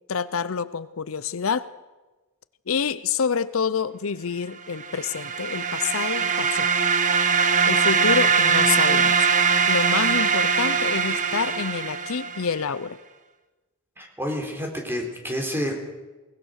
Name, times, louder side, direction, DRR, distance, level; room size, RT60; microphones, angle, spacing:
voice 1, 0.1-1.7 2.7-6.7 7.7-9.3 9.7-13.0, left 6 dB, 70° left, 15 dB, 0.6 m, -27 dB
sound 1, 4.8-12.5, right 5 dB, 35° right, 1.2 m, -22 dB
voice 2, 14.0-15.8, equal, 10° right, 2 dB, 3.8 m, -29 dB
22.5 x 19.5 x 6.5 m, 1.2 s
head